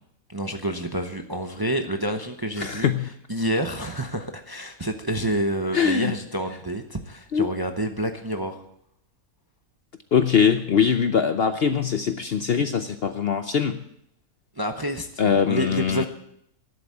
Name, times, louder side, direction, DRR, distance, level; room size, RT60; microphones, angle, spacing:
voice 1, 0.3-2.9 3.3-8.6 14.6-16.1, right 1 dB, 20° right, 5 dB, 0.7 m, -28 dB
voice 2, 2.6-3.1 5.7-6.1 7.3-7.5 10.1-13.8 15.2-16.1, left 7 dB, 55° left, 9 dB, 0.7 m, -22 dB
11.0 x 8.1 x 8.3 m, 0.72 s
omnidirectional pair, 1.5 m